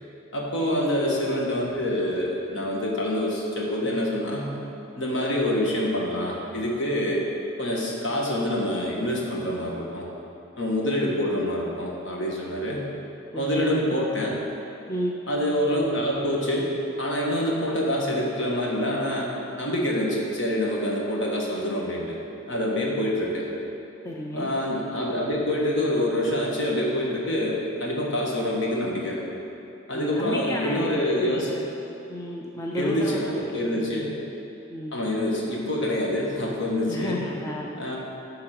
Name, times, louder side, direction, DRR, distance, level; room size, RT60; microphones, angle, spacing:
voice 1, 0.3-4.6 4.9-7.2 7.6-10.1 10.6-12.9 13.3-14.4 15.3-16.7 17.0-19.3 19.6-22.2 22.5-23.5 24.3-29.2 29.9-31.5 32.7-34.1 34.9-37.2 37.8-38.0, left 1 dB, 65° left, -3 dB, 1.5 m, -26 dB
voice 2, 14.9-15.2 24.0-24.5 29.9-30.9 31.2-31.6 32.1-33.4 33.7-34.2 34.7-35.0 36.9-37.8, left 1 dB, 15° left, -2 dB, 0.4 m, -32 dB
11.5 x 3.8 x 5.9 m, 2.8 s
head